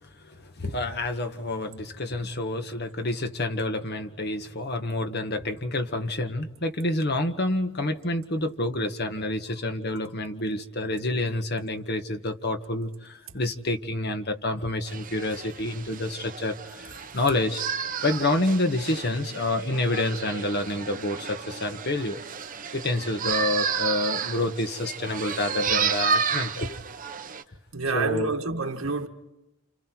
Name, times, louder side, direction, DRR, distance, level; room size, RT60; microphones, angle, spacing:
voice 1, 0.0-22.2 22.7-26.8 27.9-28.3, left 2 dB, 50° left, 1.6 m, -28 dB
sound 1, 14.9-27.4, right 6 dB, 40° right, 1.3 m, -31 dB
voice 2, 27.7-29.1, right 3 dB, 75° right, 2.0 m, -28 dB
30.0 x 28.0 x 4.6 m
head